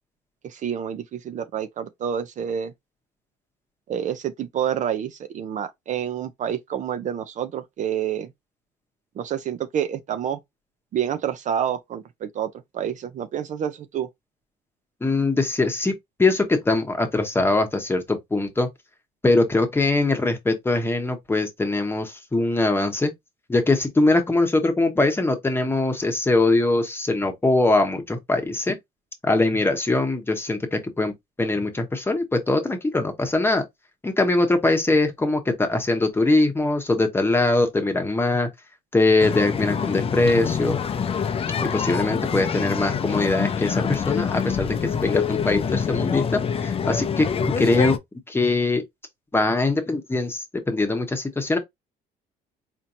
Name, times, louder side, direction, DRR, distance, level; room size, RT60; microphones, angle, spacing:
voice 1, 0.4-2.7 3.9-8.3 9.2-10.4 10.9-14.1, right 9 dB, 45° right, 0.5 m, -28 dB
voice 2, 15.0-15.9 16.2-18.7 19.2-23.1 23.5-28.8 29.2-31.1 31.4-33.6 34.0-38.5 38.9-40.8 41.7-48.0 48.3-48.8 49.3-51.6, left 2 dB, 15° left, 0.9 m, -22 dB
sound 1, 39.2-48.0, left 7 dB, 35° left, 0.5 m, -26 dB
4.4 x 2.8 x 2.5 m
cardioid pair, 110°, 17 cm